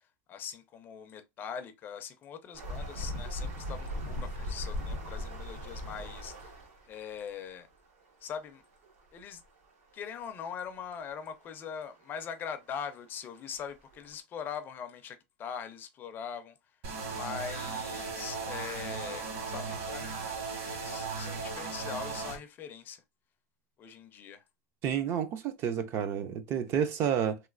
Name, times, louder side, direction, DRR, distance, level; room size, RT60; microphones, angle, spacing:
voice 1, 0.3-6.6 6.9-7.7 8.2-8.6 9.1-9.4 9.9-16.6 17.1-20.4 20.7-23.0 23.8-24.4, left 7 dB, 25° left, 0.4 m, -42 dB
sound 1, 2.5-6.9 8.8-8.9 9.1-9.2 10.1-10.2 12.7-12.8 13.3-13.4 13.9-14.1, left 1 dB, 80° right, 1.2 m, -38 dB
sound 2, 16.8-22.4, right 4 dB, 60° right, 1.6 m, -37 dB
voice 2, 24.8-27.4, right 8 dB, 35° right, 0.4 m, -30 dB
3.0 x 3.0 x 2.4 m
supercardioid pair, 155°, 8 cm